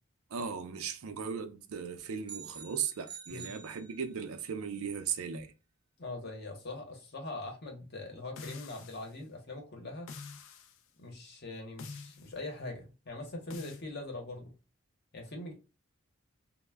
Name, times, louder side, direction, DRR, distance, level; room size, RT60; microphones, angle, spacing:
voice 1, 0.3-5.5, right 6 dB, 85° right, 0.4 m, -37 dB
sound 1, 2.3-4.4, right 7 dB, 20° right, 0.3 m, -48 dB
voice 2, 6.0-10.1 11.0-14.5 15.1-15.5, left 2 dB, 50° left, 0.8 m, -42 dB
sound 2, 8.4-9.1 10.1-10.8 11.8-12.4 13.5-13.8, left 4 dB, 70° left, 0.4 m, -46 dB
2.1 x 2.0 x 3.3 m
head